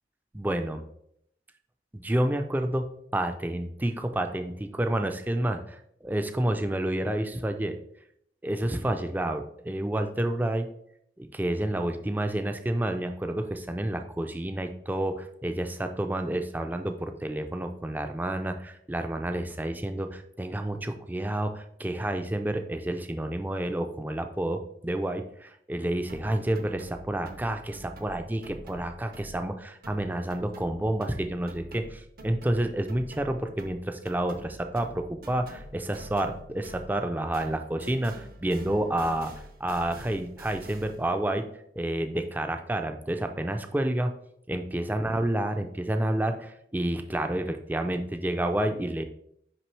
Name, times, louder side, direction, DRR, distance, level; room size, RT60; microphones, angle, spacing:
voice 1, 0.3-0.8 1.9-2.9 3.1-7.8 8.4-10.7 11.2-39.3 39.6-41.5 41.8-44.1 44.5-49.0, right 1 dB, 10° right, 7 dB, 0.4 m, -29 dB
sound 1, 26.1-29.6 29.8-37.1 37.3-41.1, equal, 55° right, 0.7 m, -47 dB
6.0 x 5.2 x 3.2 m, 0.72 s
head